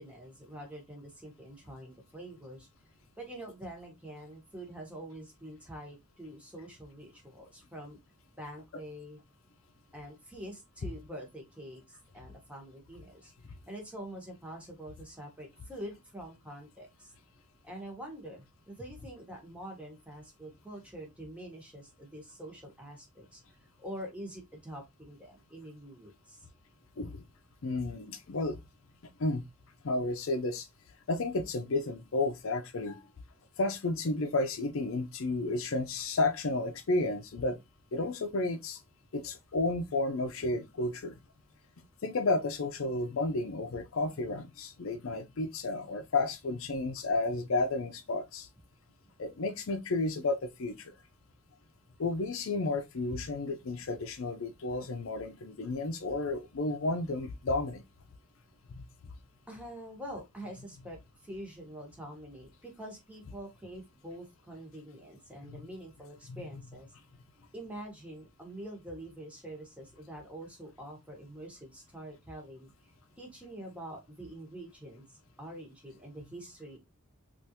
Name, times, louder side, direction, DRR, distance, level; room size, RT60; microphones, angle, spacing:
voice 1, 0.0-2.7 3.2-8.0 8.4-9.2 9.9-13.3 13.7-17.1 17.6-23.4 23.8-26.4 59.5-61.0 61.2-66.9 67.5-72.7 73.2-76.8, right 1 dB, 5° right, 1.0 m, -45 dB
voice 2, 27.6-28.6 29.2-29.4 29.8-30.7 31.1-33.0 33.6-37.6 37.9-38.8 39.1-41.2 42.0-48.5 49.2-51.0 52.0-57.8 58.7-58.8 65.4-65.6 66.3-66.6, left 2 dB, 65° left, 0.5 m, -32 dB
3.4 x 2.5 x 2.8 m
head